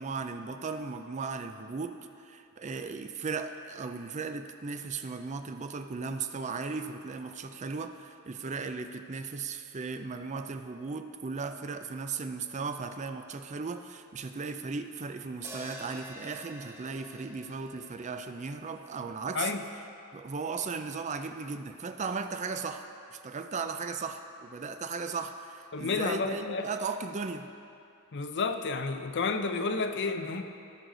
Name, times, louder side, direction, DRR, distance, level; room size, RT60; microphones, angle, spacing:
voice 1, 0.0-19.5 20.1-27.5, right 4 dB, 35° right, 8 dB, 0.4 m, -36 dB
sound 1, 15.4-19.7, right 1 dB, 10° right, 1.3 m, -48 dB
voice 2, 25.7-26.6 28.1-30.4, left 4 dB, 55° left, 7 dB, 0.6 m, -31 dB
17.0 x 6.5 x 3.9 m, 2.6 s
head